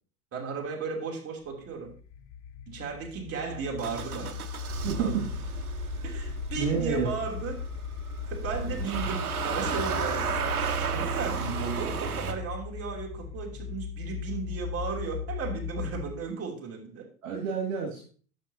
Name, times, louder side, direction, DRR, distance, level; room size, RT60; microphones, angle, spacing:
voice 1, 0.3-1.9 2.7-5.2 6.0-7.6 8.3-10.3 10.8-17.1, right 5 dB, 30° right, -1 dB, 2.9 m, -35 dB
sound 1, 1.4-16.3, left 7 dB, 40° left, 0.9 m, -38 dB
Motor vehicle (road) / Engine starting, 3.8-12.3, right 5 dB, 90° right, 1.0 m, -33 dB
voice 2, 4.8-5.2 6.5-7.1 17.2-18.0, right 6 dB, 65° right, -1 dB, 2.4 m, -29 dB
11.5 x 7.4 x 2.7 m, 0.41 s
hypercardioid pair, 95°, 43 cm